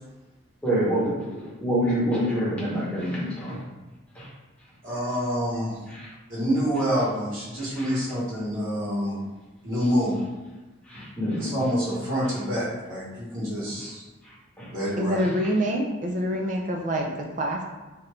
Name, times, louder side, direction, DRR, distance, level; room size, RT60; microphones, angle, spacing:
voice 1, 0.6-3.6 4.1-4.3 5.9-6.1 7.8-7.9 10.9-11.6 14.2-14.7 15.2-15.3, equal, 5° left, -9 dB, 1.0 m, -27 dB
voice 2, 4.8-5.9 6.3-9.2 9.6-10.2 10.9-11.0 11.4-14.1 14.7-15.2, equal, 70° right, -9 dB, 1.4 m, -27 dB
voice 3, 15.0-17.6, equal, 40° right, 0 dB, 0.4 m, -26 dB
2.9 x 2.5 x 3.3 m, 1.2 s
head